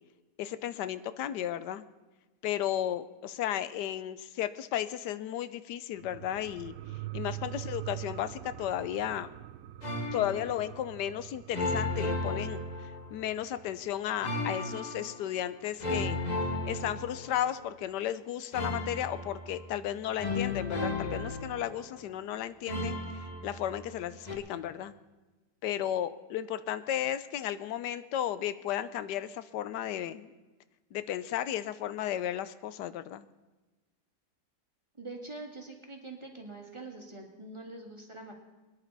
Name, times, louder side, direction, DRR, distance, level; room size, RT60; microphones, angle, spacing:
voice 1, 0.4-1.8 2.4-6.7 7.1-9.3 10.1-16.2 16.6-24.9 25.6-30.3 30.9-33.2, left 11 dB, 90° left, 14 dB, 1.3 m, -34 dB
sound 1, 5.9-15.0 15.4-15.5, right 16 dB, 70° right, 1.0 m, -44 dB
sound 2, 9.8-10.7 11.5-13.3 14.2-15.2 15.8-17.6 18.5-19.7 20.2-22.1 22.7-23.9 24.3-24.4, left 2 dB, 25° left, 1.9 m, -35 dB
voice 2, 35.0-38.3, right 2 dB, 20° right, 1 dB, 1.8 m, -44 dB
22.5 x 10.5 x 4.0 m, 1.2 s
omnidirectional pair, 1.8 m